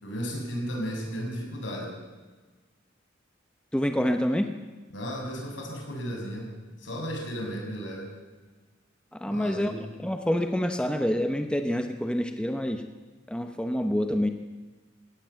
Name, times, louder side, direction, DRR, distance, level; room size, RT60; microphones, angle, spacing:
voice 1, 0.0-1.9 4.9-6.5 6.8-8.1 9.2-9.7, equal, 70° left, 1 dB, 6.5 m, -34 dB
voice 2, 3.7-4.5 9.1-12.8 13.3-14.3, equal, 5° left, 6 dB, 0.9 m, -27 dB
19.5 x 17.0 x 8.1 m, 1.3 s
head